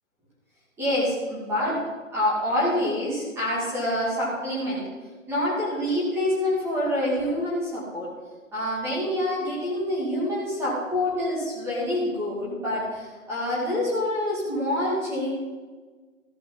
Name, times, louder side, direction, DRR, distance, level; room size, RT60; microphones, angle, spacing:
voice 1, 0.8-1.8 2.1-4.9 5.3-8.1 8.5-15.3, left 1 dB, 5° right, -7 dB, 2.2 m, -26 dB
14.0 x 8.3 x 3.9 m, 1.4 s
hypercardioid pair, 160°, 41 cm